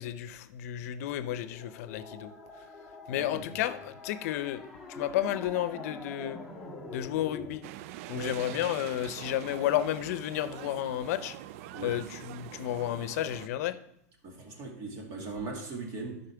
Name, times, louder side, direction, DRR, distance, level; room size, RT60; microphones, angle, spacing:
voice 1, 0.0-2.3 3.1-4.6 4.9-6.4 6.9-7.6 8.1-11.4 11.8-13.8, left 12 dB, 65° left, 0.7 m, -32 dB
sound 1, 1.1-7.6, left 2 dB, 5° right, 1.6 m, -45 dB
voice 2, 3.2-3.5 8.1-8.4 11.7-12.0 14.2-16.2, right 3 dB, 40° right, 2.1 m, -39 dB
sound 2, 7.6-13.5, right 13 dB, 60° right, 0.3 m, -44 dB
11.5 x 5.5 x 3.4 m
supercardioid pair, 125°, 9 cm